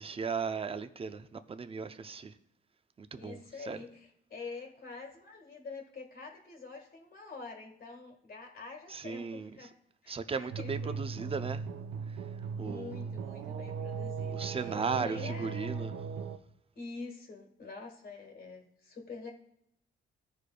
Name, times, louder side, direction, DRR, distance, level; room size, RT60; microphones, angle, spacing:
voice 1, 0.0-2.3 3.0-3.4 3.7-3.8 8.9-9.5 10.1-11.7 12.6-13.1 14.3-15.9, right 5 dB, 30° right, 0.6 m, -36 dB
voice 2, 3.2-9.7 10.0-11.0 12.5-15.9 16.7-19.3, left 4 dB, 50° left, 1.5 m, -46 dB
sound 1, 10.5-16.4, right 5 dB, 90° right, 0.5 m, -38 dB
14.5 x 4.9 x 2.3 m
cardioid pair, 90°, 20 cm